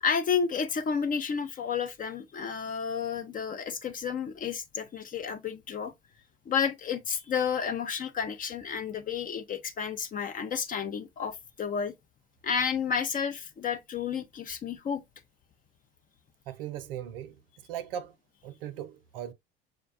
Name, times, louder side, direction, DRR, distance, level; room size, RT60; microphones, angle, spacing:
voice 1, 0.0-5.9 6.5-11.9 12.4-15.0, left 6 dB, 25° left, 0.6 m, -31 dB
voice 2, 16.5-18.1 18.4-19.3, right 10 dB, 60° right, 0.6 m, -39 dB
6.3 x 2.2 x 2.4 m
figure-of-eight pair, 70°, 31 cm